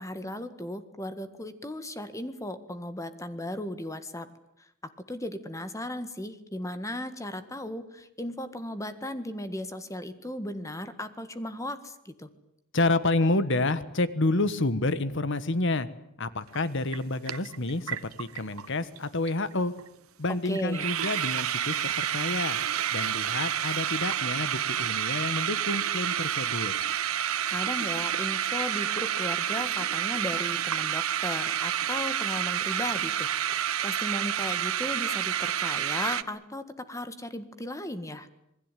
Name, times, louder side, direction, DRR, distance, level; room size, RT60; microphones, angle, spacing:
voice 1, 0.0-4.3 5.1-12.3 20.5-20.9 27.5-38.3, left 1 dB, 15° left, 11 dB, 1.7 m, -36 dB
voice 2, 12.7-15.9 16.2-19.7 20.2-22.6 22.9-26.7, left 2 dB, 60° left, 14 dB, 1.5 m, -29 dB
sound 1, 16.5-16.6 16.9-18.7 19.0-19.1 19.2-19.5 19.8-19.9 20.3-20.4 20.5-36.2, right 10 dB, 85° right, 1.0 m, -29 dB
27.0 x 21.0 x 9.2 m, 0.78 s
head